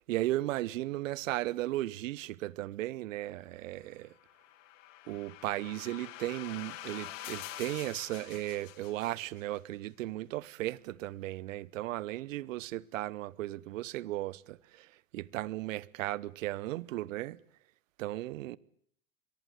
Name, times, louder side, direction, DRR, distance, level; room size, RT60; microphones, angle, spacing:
voice 1, 0.1-4.1 5.1-17.4 18.0-18.6, right 16 dB, 70° right, 1.1 m, -36 dB
Paris Sweep, 4.1-9.4, left 14 dB, 65° left, 3.0 m, -46 dB
23.5 x 23.0 x 8.0 m
hypercardioid pair, 90°, 41 cm